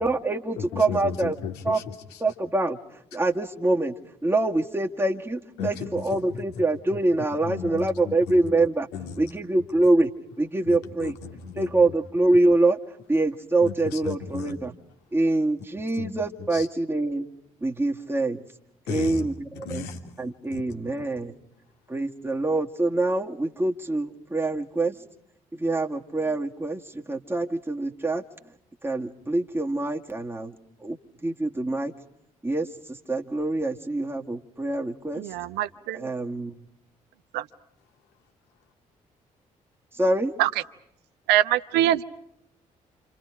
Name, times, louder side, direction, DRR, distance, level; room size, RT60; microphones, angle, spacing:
voice 1, 0.0-1.3 1.6-1.8 2.2-2.8 3.1-3.9 4.2-8.9 9.2-10.1 10.4-11.2 11.6-12.8 13.1-14.7 15.1-17.3 17.6-18.4 18.9-19.8 20.2-21.3 21.9-25.0 25.5-28.2 28.8-30.6 30.8-31.0 31.2-31.9 32.4-35.2 35.9-36.5 39.9-40.3, right 2 dB, 10° right, 0 dB, 2.2 m, -25 dB
voice 2, 0.6-2.2 5.6-6.4 7.4-8.2 8.9-9.2 10.6-11.7 13.6-14.6 15.9-16.1 16.5-16.7 18.9-19.3 19.5-20.2 20.5-20.6 21.0-21.3, left 7 dB, 65° left, 4 dB, 3.0 m, -35 dB
voice 3, 35.2-36.1 37.3-37.4 40.4-40.5 41.3-42.0, right 13 dB, 65° right, 13 dB, 0.9 m, -23 dB
29.0 x 28.5 x 5.0 m, 0.76 s
figure-of-eight pair, 40°, 18 cm